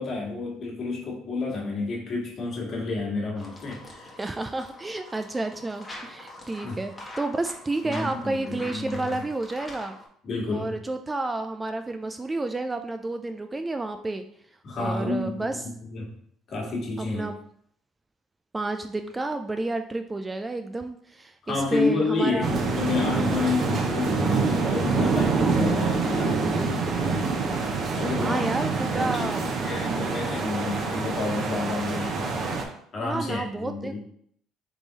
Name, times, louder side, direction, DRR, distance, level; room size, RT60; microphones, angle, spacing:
voice 1, 0.0-4.1 6.6-6.8 7.8-9.2 10.2-10.8 14.6-16.1 16.5-17.3 21.4-26.8 28.0-32.1 32.9-34.0, left 3 dB, 50° left, -3 dB, 1.6 m, -30 dB
sound 1, 3.3-10.1, left 1 dB, 20° left, 1.2 m, -44 dB
voice 2, 4.2-10.0 10.5-14.2 14.8-15.6 17.0-17.4 18.5-22.5 28.2-29.5 33.0-34.0, right 2 dB, 20° right, 7 dB, 0.3 m, -30 dB
sound 2, 22.4-32.6, right 4 dB, 50° right, 0.8 m, -26 dB
3.5 x 3.3 x 4.0 m, 0.66 s
supercardioid pair, 90°, 0 cm